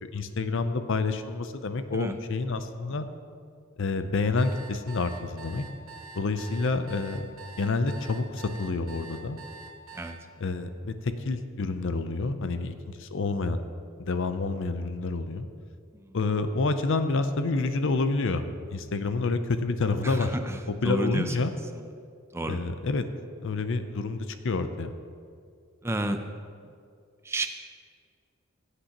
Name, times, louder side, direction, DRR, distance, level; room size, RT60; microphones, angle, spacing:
voice 1, 0.0-3.1 3.8-5.6 6.2-7.3 7.6-9.4 10.4-13.6 14.0-15.4 16.1-18.4 18.7-20.3 20.8-21.5 22.5-23.1 23.4-24.9, left 3 dB, 60° left, 10 dB, 0.5 m, -28 dB
sound 1, 4.4-10.1, right 4 dB, 70° right, 1.1 m, -45 dB
voice 2, 20.0-21.5 21.7-21.8 22.3-22.6 25.8-26.2 27.2-27.5, right 1 dB, 10° right, 7 dB, 0.5 m, -31 dB
16.0 x 8.1 x 2.9 m, 2.3 s
head